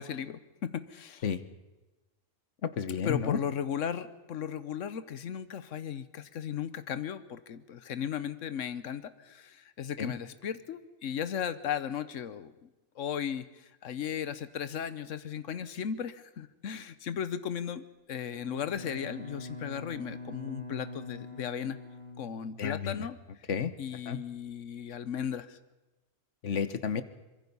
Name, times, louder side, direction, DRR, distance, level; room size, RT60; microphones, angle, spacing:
voice 1, 0.0-1.3 3.0-12.7 13.0-21.8 22.2-23.2 23.8-25.6, left 8 dB, 90° left, 13 dB, 1.2 m, -36 dB
voice 2, 2.6-3.4 10.0-10.1 22.6-23.1 23.5-23.7 24.1-24.2 26.4-27.0, left 7 dB, 75° left, 12 dB, 1.4 m, -31 dB
Bowed string instrument, 18.3-23.1, left 2 dB, 50° right, 4.6 m, -44 dB
25.0 x 22.5 x 5.5 m, 1.1 s
omnidirectional pair, 1.3 m